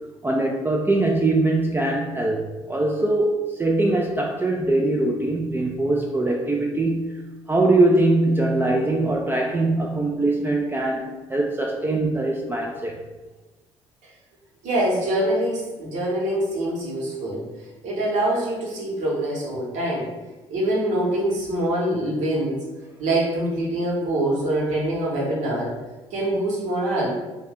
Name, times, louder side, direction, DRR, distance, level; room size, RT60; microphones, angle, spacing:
voice 1, 0.2-7.2 7.5-12.9, right 2 dB, 15° right, 0 dB, 0.4 m, -22 dB
voice 2, 14.6-17.5 17.8-20.1 20.5-22.6 23.0-25.8 26.1-27.1, right 1 dB, 60° right, -4 dB, 1.0 m, -24 dB
2.6 x 2.2 x 3.4 m, 1.2 s
figure-of-eight pair, 50°, 14 cm